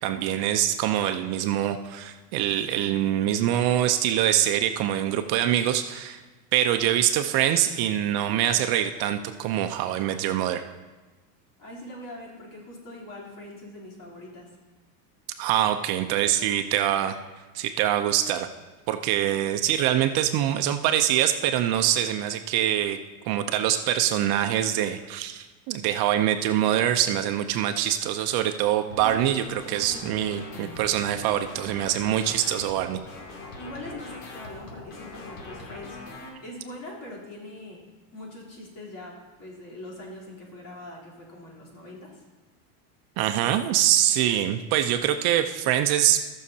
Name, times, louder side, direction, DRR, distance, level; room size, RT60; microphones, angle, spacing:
voice 1, 0.0-6.2 6.5-10.6 15.4-17.2 17.5-18.5 18.9-23.0 23.3-33.0 43.2-46.2, right 11 dB, 50° right, 7 dB, 0.7 m, -24 dB
voice 2, 11.6-14.6 33.6-37.8 38.1-42.2, left 1 dB, 45° left, -4 dB, 3.6 m, -42 dB
sound 1, 28.9-36.3, left 2 dB, 80° left, 2.5 m, -41 dB
19.0 x 6.5 x 2.8 m, 1.2 s
supercardioid pair, 125°, 48 cm